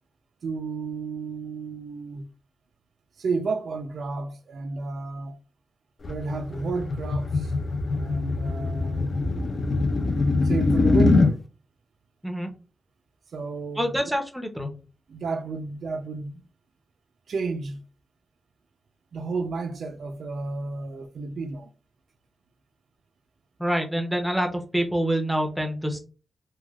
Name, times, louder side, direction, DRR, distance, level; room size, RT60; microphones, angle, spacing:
voice 1, 0.4-2.3 3.2-5.4 6.0-7.5 8.0-9.5 10.4-11.4 13.3-14.0 15.1-16.4 17.3-17.8 19.1-21.7, right 4 dB, 70° right, 0.4 m, -32 dB
sound 1, 6.0-11.3, left 3 dB, 45° left, 0.3 m, -23 dB
voice 2, 13.8-14.7 23.6-26.0, equal, 5° right, 0.6 m, -26 dB
3.2 x 2.2 x 2.3 m
wide cardioid pair, 145°, 0 cm